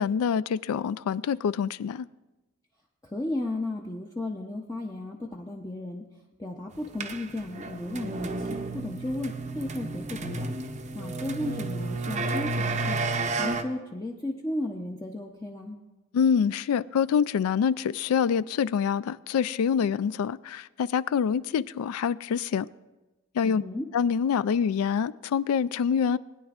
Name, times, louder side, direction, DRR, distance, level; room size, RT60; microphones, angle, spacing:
voice 1, 0.0-2.1 16.1-22.7 23.3-23.6 23.9-26.2, left 7 dB, 90° left, 18 dB, 0.3 m, -26 dB
voice 2, 3.0-6.1 6.4-10.5 10.9-13.0 13.4-15.8 23.4-23.9, left 1 dB, 15° left, -1 dB, 0.5 m, -34 dB
sound 1, 6.9-13.6, right 3 dB, 30° right, 0.5 m, -31 dB
20.0 x 9.9 x 2.4 m, 1.1 s
head